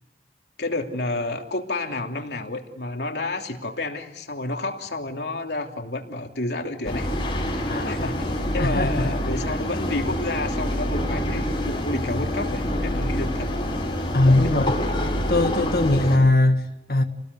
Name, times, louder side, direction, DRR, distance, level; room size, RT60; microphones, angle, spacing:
voice 1, 0.6-7.1 7.8-13.5 14.2-14.6, left 2 dB, 75° left, 3.0 m, -30 dB
sound 1, 6.8-16.2, equal, 30° left, 6.5 m, -26 dB
voice 2, 7.7-8.0 8.6-9.2 14.1-14.7 15.3-17.0, left 2 dB, 60° left, 1.7 m, -20 dB
30.0 x 19.5 x 8.2 m
head